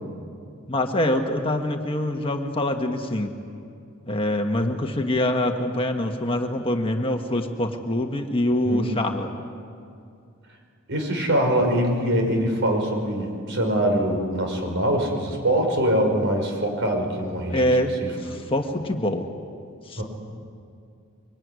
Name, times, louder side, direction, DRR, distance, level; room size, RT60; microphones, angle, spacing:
voice 1, 0.7-3.3 4.0-9.3 17.5-17.9 18.2-19.3 19.9-20.0, left 1 dB, 25° left, 4 dB, 1.5 m, -24 dB
voice 2, 10.9-17.7 18.0-18.1 20.0-20.1, right 1 dB, 60° right, 3 dB, 5.6 m, -23 dB
24.5 x 24.0 x 9.7 m, 2.4 s
head